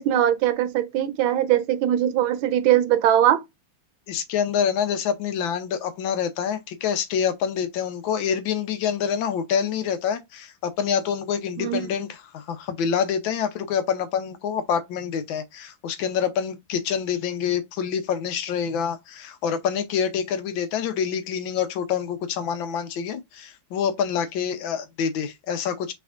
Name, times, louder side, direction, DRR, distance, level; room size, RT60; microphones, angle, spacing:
voice 1, 0.0-3.4 11.6-11.9, right 11 dB, 85° right, 1.5 m, -21 dB
voice 2, 4.1-12.1 12.3-25.9, left 7 dB, 80° left, 1.4 m, -26 dB
5.5 x 3.5 x 2.4 m
omnidirectional pair, 2.2 m